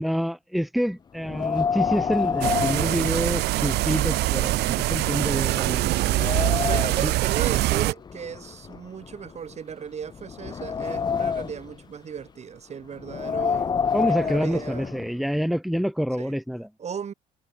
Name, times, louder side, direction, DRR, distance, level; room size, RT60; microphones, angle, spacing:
voice 1, 0.0-6.5 7.0-7.1 13.3-13.6 13.9-16.7, equal, ahead, 1.7 m, -27 dB
Wind, 1.2-3.8 4.2-4.3 5.0-5.1 5.5-7.2 8.0-9.5 10.1-11.7 13.0-15.1, left 6 dB, 25° left, 0.5 m, -28 dB
sound 1, 2.4-7.9, right 18 dB, 75° right, 0.7 m, -24 dB
voice 2, 6.3-13.6 14.0-14.9 16.2-16.3 16.8-17.1, right 7 dB, 40° right, 6.0 m, -36 dB
cardioid pair, 110°, 17 cm